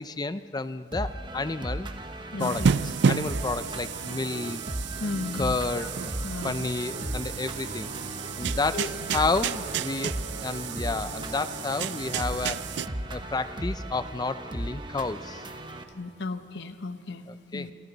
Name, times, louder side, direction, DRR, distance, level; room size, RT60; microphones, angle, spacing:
voice 1, 0.0-1.9 2.4-4.6 5.3-5.9 6.4-7.9 8.4-8.8 9.1-12.6 13.1-15.4 17.3-17.7, left 3 dB, 20° left, 13 dB, 0.5 m, -31 dB
sound 1, 0.9-15.8, right 1 dB, 25° right, 1.1 m, -36 dB
voice 2, 2.3-2.7 5.0-5.9 6.2-6.6 8.7-8.9 15.9-17.3 17.5-17.7, left 3 dB, 65° left, 9 dB, 1.0 m, -34 dB
sound 2, 2.3-12.8, equal, 80° right, 7.2 m, -45 dB
sound 3, 2.4-12.9, right 6 dB, 65° right, 0.4 m, -31 dB
27.5 x 27.0 x 4.0 m, 2.5 s
head